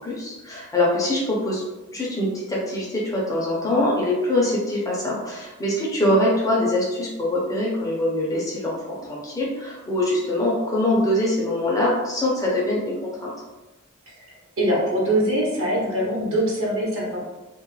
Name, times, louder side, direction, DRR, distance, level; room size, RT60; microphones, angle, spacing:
voice 1, 0.0-1.6 1.9-13.3, left 1 dB, 15° left, -4 dB, 0.4 m, -23 dB
voice 2, 14.6-17.2, right 1 dB, 60° right, -5 dB, 0.9 m, -22 dB
2.3 x 2.0 x 3.0 m, 1.1 s
head